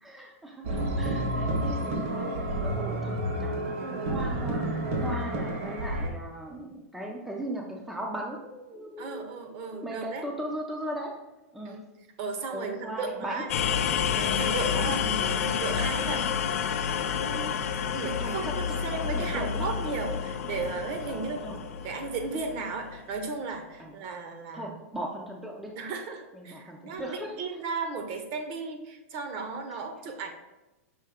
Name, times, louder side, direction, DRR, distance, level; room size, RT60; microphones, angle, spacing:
voice 1, 0.0-4.6 5.0-11.1 11.5-11.8 12.5-13.5 14.7-14.9 18.2-19.7 21.1-21.6 23.8-23.9 24.5-25.7 26.3-27.4, right 1 dB, 5° right, -1 dB, 0.4 m, -38 dB
sound 1, 0.6-6.1, right 1 dB, 65° right, 1.2 m, -30 dB
voice 2, 9.0-10.3 11.6-11.8 12.2-13.5 14.1-16.3 17.1-17.5 17.9-21.5 21.8-24.8 25.8-30.3, right 4 dB, 40° right, 5 dB, 0.7 m, -35 dB
sound 2, 13.5-23.3, left 7 dB, 75° left, 0.5 m, -29 dB
5.6 x 2.7 x 3.5 m, 1.0 s
supercardioid pair, 150°, 8 cm